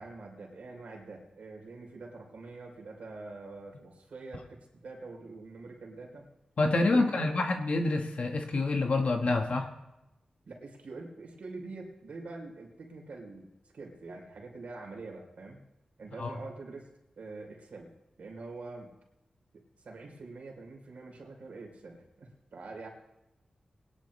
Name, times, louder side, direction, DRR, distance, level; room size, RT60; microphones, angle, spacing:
voice 1, 0.0-6.3 6.9-7.4 10.4-15.6 16.0-16.9 17.2-18.9 19.5-22.9, right 3 dB, 80° right, 0 dB, 3.3 m, -45 dB
voice 2, 6.6-9.7 16.2-16.3, left 2 dB, 65° left, 4 dB, 1.3 m, -27 dB
21.5 x 10.5 x 3.2 m, 0.91 s
wide cardioid pair, 75°, 2 cm